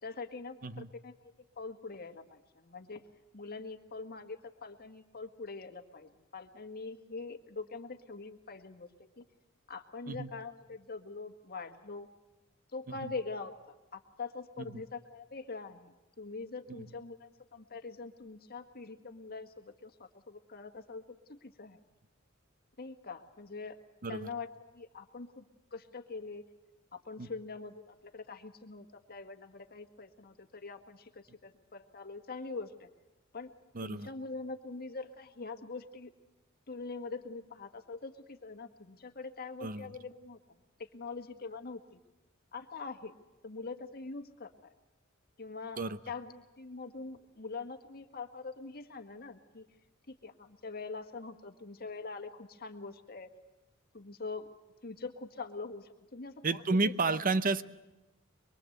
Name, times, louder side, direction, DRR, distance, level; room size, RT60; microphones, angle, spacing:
voice 1, 0.0-3.0 3.3-9.3 9.7-12.1 12.7-13.5 13.9-21.0 21.3-21.8 22.8-23.8 24.1-24.5 24.7-25.4 25.7-26.4 26.9-32.9 33.3-33.5 33.8-36.1 36.7-42.0 42.5-43.1 43.4-44.5 45.4-49.7 50.1-53.3 53.9-54.5 54.8-57.2, left 4 dB, 50° left, 6 dB, 1.8 m, -44 dB
voice 2, 33.7-34.1 39.6-39.9 45.8-46.0 56.4-57.6, right 3 dB, 45° right, 14 dB, 0.8 m, -31 dB
23.5 x 23.5 x 8.0 m, 1.0 s
head